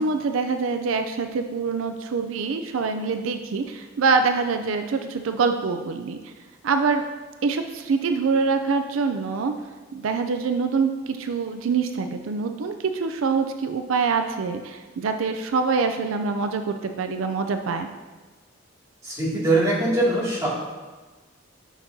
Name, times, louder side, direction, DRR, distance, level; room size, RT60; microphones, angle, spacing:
voice 1, 0.0-6.3 6.6-7.0 7.4-9.5 9.9-17.9, right 4 dB, 85° right, 7 dB, 0.4 m, -25 dB
voice 2, 19.0-20.5, right 2 dB, 15° right, -7 dB, 2.3 m, -22 dB
11.0 x 6.0 x 2.7 m, 1.3 s
head